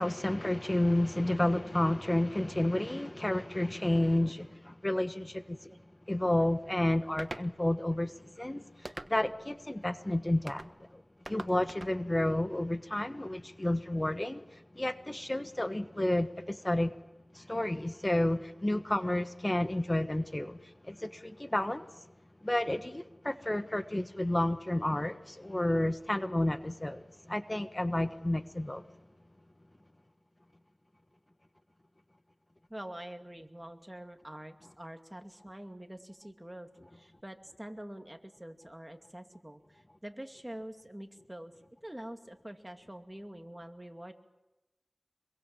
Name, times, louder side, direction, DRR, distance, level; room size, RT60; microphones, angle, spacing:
voice 1, 0.0-5.7 6.1-11.0 11.3-16.9 17.3-21.9 22.4-28.8, left 1 dB, 25° left, 1.3 m, -31 dB
sound 1, 7.2-7.5 8.8-9.4 10.5-10.7 11.2-12.0, right 2 dB, 40° right, 1.2 m, -43 dB
voice 2, 32.7-41.5 41.8-44.1, right 1 dB, 15° right, 2.4 m, -46 dB
25.0 x 22.5 x 7.3 m
wide cardioid pair, 50°, 0 cm